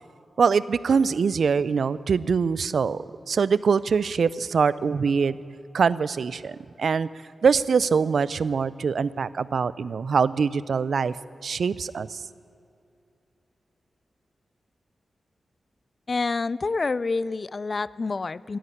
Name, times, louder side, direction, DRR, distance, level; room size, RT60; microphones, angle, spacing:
voice 1, 0.4-3.0 3.3-5.3 5.7-7.1 7.4-11.1 11.4-12.2, right 5 dB, 70° right, 18 dB, 0.4 m, -23 dB
voice 2, 16.1-18.6, left 3 dB, 40° left, 20 dB, 0.3 m, -27 dB
15.0 x 10.0 x 9.6 m, 2.6 s
wide cardioid pair, 135°, 0 cm